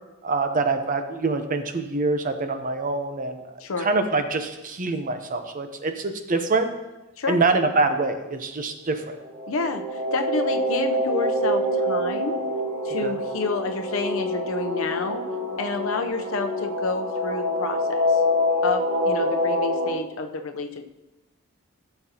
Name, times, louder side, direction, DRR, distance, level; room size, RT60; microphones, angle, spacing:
voice 1, 0.2-6.7 7.3-9.2 13.0-13.1, right 3 dB, 40° right, 7 dB, 0.8 m, -25 dB
sound 1, 9.2-19.9, left 1 dB, 90° right, 2.2 m, -26 dB
voice 2, 9.5-12.4 12.8-15.2 15.6-18.2 18.6-20.9, left 3 dB, 65° left, 6 dB, 0.7 m, -29 dB
15.0 x 6.8 x 2.9 m, 1.0 s
head